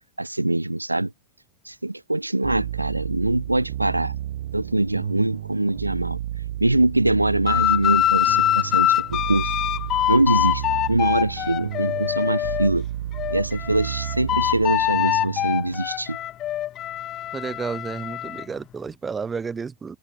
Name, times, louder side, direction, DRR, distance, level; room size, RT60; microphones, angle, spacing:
voice 1, 0.2-1.1 1.6-4.1 4.5-6.2 6.6-9.5 10.1-10.6 10.9-12.9 13.3-16.2, right 2 dB, 85° right, 0.7 m, -23 dB
sound 1, 2.4-15.8, right 13 dB, 60° right, 5.0 m, -32 dB
sound 2, 7.5-12.7 13.1-18.4, left 12 dB, 30° left, 2.5 m, -24 dB
voice 2, 17.3-20.0, right 5 dB, 15° right, 3.2 m, -31 dB
open air
figure-of-eight pair, 90°, 0 cm